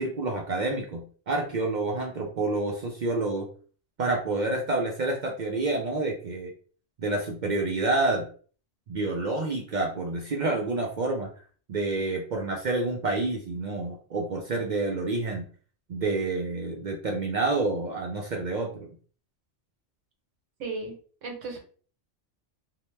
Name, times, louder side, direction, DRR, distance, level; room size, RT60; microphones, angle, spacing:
voice 1, 0.0-3.5 4.0-6.5 7.0-8.3 8.9-11.3 11.7-15.5 15.9-18.9, right 2 dB, 60° right, 1 dB, 0.5 m, -28 dB
voice 2, 20.6-20.9 21.2-21.6, right 3 dB, 80° right, 2 dB, 1.3 m, -34 dB
2.8 x 2.1 x 3.1 m, 0.42 s
omnidirectional pair, 1.2 m